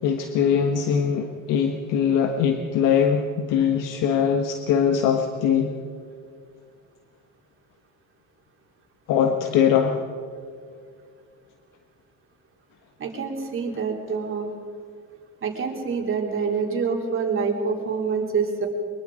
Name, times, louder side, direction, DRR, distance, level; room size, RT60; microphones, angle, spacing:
voice 1, 0.0-5.7 9.1-10.0, left 7 dB, 85° left, 5 dB, 1.4 m, -22 dB
voice 2, 13.0-14.5 15.4-18.7, right 5 dB, 40° right, 1 dB, 3.8 m, -26 dB
23.5 x 22.0 x 5.1 m, 2.3 s
cardioid pair, 125°, 31 cm